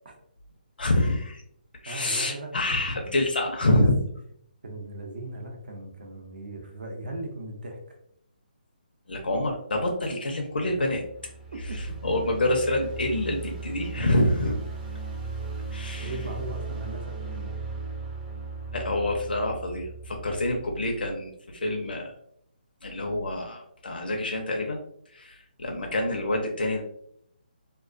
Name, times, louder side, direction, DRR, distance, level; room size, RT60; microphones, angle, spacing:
voice 1, 0.8-1.4 1.8-4.0 9.1-11.0 12.0-14.5 15.7-16.1 18.7-22.1 22.8-24.8 25.1-26.8, left 1 dB, 80° left, 1 dB, 0.5 m, -27 dB
voice 2, 1.9-3.2 3.8-3.9 4.6-8.0 10.6-10.9 11.5-11.9 16.0-17.6, right 1 dB, 70° right, 1 dB, 0.6 m, -39 dB
sound 1, 10.7-20.8, right 4 dB, 15° right, 0.4 m, -37 dB
2.3 x 2.2 x 2.4 m, 0.70 s
figure-of-eight pair, 150°, 5 cm